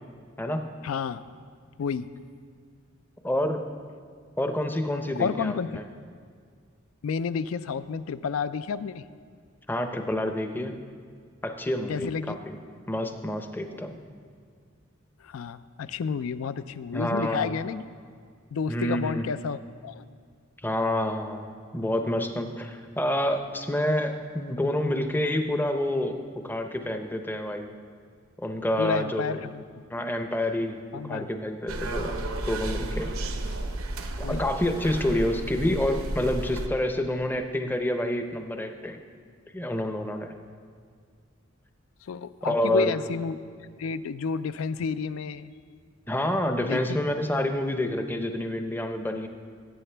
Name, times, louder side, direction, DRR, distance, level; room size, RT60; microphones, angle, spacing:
voice 1, 0.8-1.2 1.8-2.1 5.2-5.8 7.0-9.0 11.9-12.4 15.2-17.8 18.5-20.0 28.8-29.6 30.9-31.3 33.5-33.6 34.2-34.4 42.1-43.4 43.8-45.5 46.6-46.8, left 6 dB, 80° left, 14 dB, 0.4 m, -31 dB
voice 2, 3.2-3.6 4.4-5.9 9.7-10.8 11.4-12.6 12.9-14.0 16.9-17.6 18.7-19.2 20.6-21.5 21.7-27.7 28.4-29.4 29.9-32.2 32.4-33.1 34.2-39.0 39.5-40.3 42.4-43.0 46.1-49.3, left 1 dB, 10° left, 6 dB, 0.6 m, -28 dB
sound 1, 31.7-36.7, right 2 dB, 85° right, 0.8 m, -32 dB
16.5 x 8.1 x 3.3 m, 2.1 s
head